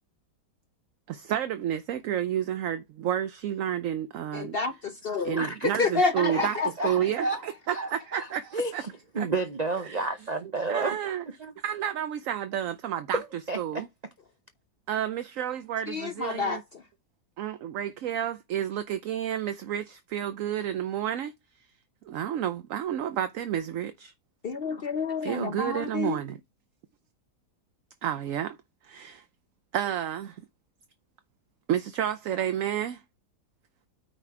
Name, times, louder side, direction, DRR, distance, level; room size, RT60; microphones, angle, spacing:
voice 1, 1.1-4.6 5.2-6.6 6.8-8.8 9.2-9.3 9.9-10.0 10.7-11.2 11.6-13.2 13.6-13.9 14.9-16.6 17.4-21.3 22.1-24.1 25.2-26.4 28.0-28.6 28.8-29.2 29.7-30.4 31.7-33.0, right 10 dB, 65° right, 0.9 m, -30 dB
voice 2, 4.3-5.5 5.8-6.9 15.9-16.6 24.4-26.2, left 4 dB, 70° left, 0.5 m, -29 dB
voice 3, 5.0-5.9 6.3-11.0 11.3-11.5 13.1-13.8, right 3 dB, 85° right, 0.3 m, -32 dB
9.0 x 4.2 x 4.6 m
omnidirectional pair, 1.8 m